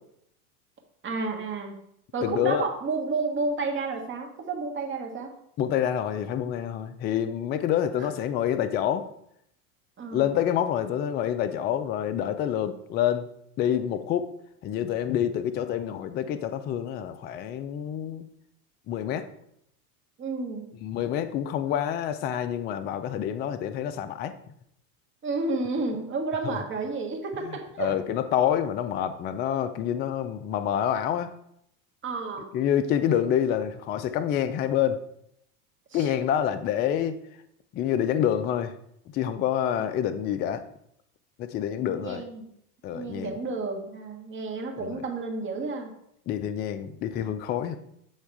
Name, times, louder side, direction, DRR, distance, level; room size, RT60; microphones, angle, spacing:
voice 1, 1.0-1.7 2.1-5.3 8.0-8.1 10.0-10.3 20.2-20.7 25.2-28.0 32.0-32.5 35.9-36.1 39.7-39.9 41.5-42.5 42.9-45.9, right 3 dB, 25° right, 1 dB, 1.6 m, -31 dB
voice 2, 2.2-2.7 5.6-9.1 10.1-13.3 13.6-14.3 14.6-18.3 18.9-19.3 20.8-24.3 26.4-26.6 27.4-31.3 32.5-35.0 35.9-37.2 37.7-38.7 39.1-40.6 41.4-42.2 42.8-43.4 44.8-45.0 46.3-47.8, left 10 dB, 25° left, 10 dB, 0.3 m, -27 dB
8.2 x 3.5 x 4.7 m, 0.73 s
supercardioid pair, 115°, 43 cm